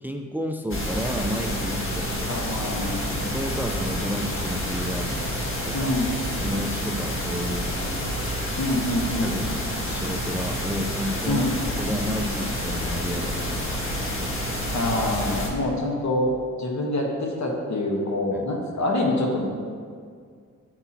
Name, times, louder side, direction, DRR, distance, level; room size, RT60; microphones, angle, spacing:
voice 1, 0.0-2.3 3.2-5.1 5.7-6.0 6.2-7.7 9.2-11.5 11.8-13.8 14.1-14.3 18.3-18.5, equal, 5° right, 4 dB, 0.6 m, -31 dB
sound 1, 0.7-15.5, equal, 45° left, 1.7 m, -29 dB
voice 2, 2.3-3.1 5.7-6.2 8.6-9.4 11.3-11.6 14.7-16.3 16.6-19.5, left 1 dB, 65° left, 0 dB, 1.5 m, -25 dB
9.7 x 7.1 x 3.0 m, 2.1 s
cardioid pair, 60°, 30 cm